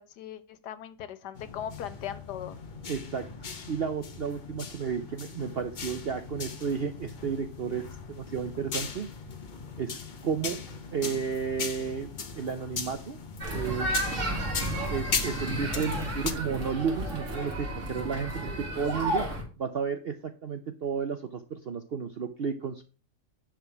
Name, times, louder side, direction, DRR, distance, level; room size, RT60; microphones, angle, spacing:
voice 1, 0.0-2.6, left 10 dB, 80° left, 12 dB, 1.4 m, -39 dB
sound 1, 1.3-16.3, left 5 dB, 40° left, 0.7 m, -38 dB
voice 2, 2.9-3.2 3.7-9.1 9.8-10.6 10.9-12.1 12.4-13.2 13.5-13.9 14.9-19.2 19.6-22.8, right 6 dB, 65° right, 8 dB, 0.6 m, -32 dB
sound 2, 13.4-19.4, right 1 dB, 45° right, 2.6 m, -32 dB
10.0 x 3.6 x 5.8 m, 0.35 s
omnidirectional pair, 1.8 m